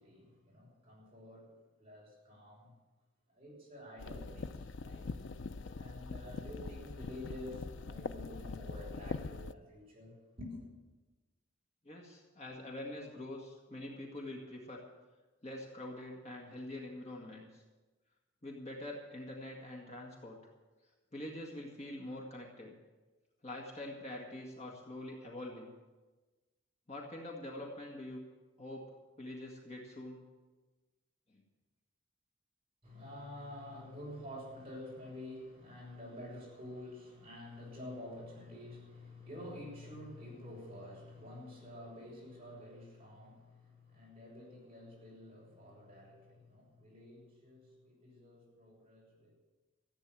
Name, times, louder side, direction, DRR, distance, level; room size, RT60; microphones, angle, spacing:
voice 1, 0.0-2.7 3.3-5.1 5.8-10.7 32.8-49.4, left 1 dB, 30° right, -4 dB, 5.7 m, -49 dB
sound 1, 4.0-9.5, left 4 dB, 65° left, 0.5 m, -43 dB
voice 2, 11.8-14.8 15.4-17.6 18.4-20.4 21.1-22.7 23.4-25.7 26.9-28.3 28.6-28.9 29.2-30.2 31.3-31.4, left 1 dB, 35° left, -1 dB, 1.8 m, -45 dB
15.0 x 8.8 x 7.6 m, 1.2 s
head